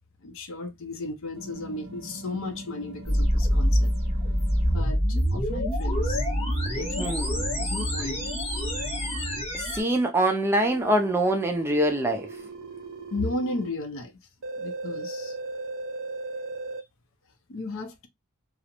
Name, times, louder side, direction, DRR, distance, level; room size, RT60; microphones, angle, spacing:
voice 1, 0.2-3.9 4.6-6.2 6.7-7.2 7.6-8.2 13.1-14.1 14.6-15.4 17.5-18.1, left 2 dB, 60° left, 0.5 m, -34 dB
sound 1, 1.4-4.8 5.9-9.4 10.6-13.7 14.4-16.8, right 2 dB, 80° right, 0.7 m, -39 dB
sound 2, 3.1-9.8, equal, 25° left, 0.9 m, -26 dB
voice 2, 7.0-7.4 9.5-12.3, right 1 dB, 10° right, 0.4 m, -24 dB
2.4 x 2.0 x 2.8 m
head